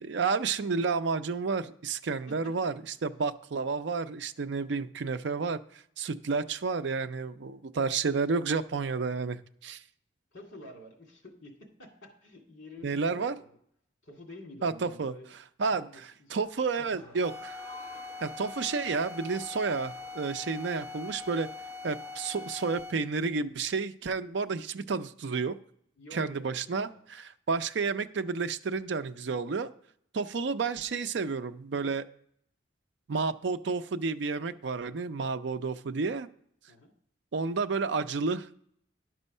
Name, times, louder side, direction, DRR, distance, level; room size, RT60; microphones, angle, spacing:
voice 1, 0.0-2.7 3.0-9.8 12.8-13.3 14.6-15.1 15.6-15.9 16.3-17.3 18.2-21.5 21.8-25.6 26.1-29.7 30.1-32.1 33.1-36.3 37.3-38.5, right 4 dB, 65° right, 11 dB, 0.5 m, -31 dB
voice 2, 10.3-11.5 11.8-13.5 14.0-15.3 15.7-16.4 16.7-17.1 26.0-27.0 36.7-36.9, left 1 dB, 70° left, 2 dB, 2.2 m, -50 dB
Crowd, 16.4-23.2, left 1 dB, 10° left, 1.1 m, -52 dB
sound 1, 17.2-23.1, left 3 dB, 15° right, 0.8 m, -43 dB
11.0 x 6.2 x 5.4 m, 0.68 s
head